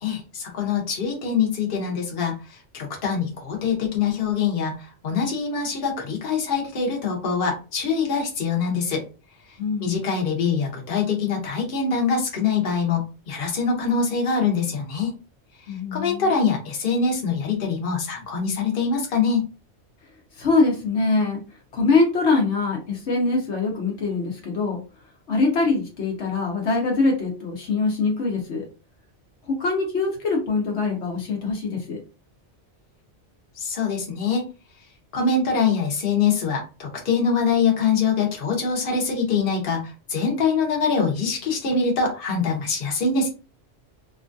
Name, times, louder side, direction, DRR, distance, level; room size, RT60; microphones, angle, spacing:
voice 1, 0.0-9.0 9.8-15.1 15.9-19.5 33.6-34.4 35.1-43.3, left 5 dB, 55° left, 0 dB, 1.0 m, -24 dB
voice 2, 9.6-10.1 15.7-16.3 20.4-21.4 21.7-24.8 25.3-28.6 29.5-32.0, left 3 dB, 75° left, 0 dB, 1.1 m, -23 dB
2.9 x 2.3 x 2.5 m, 0.33 s
omnidirectional pair, 1.2 m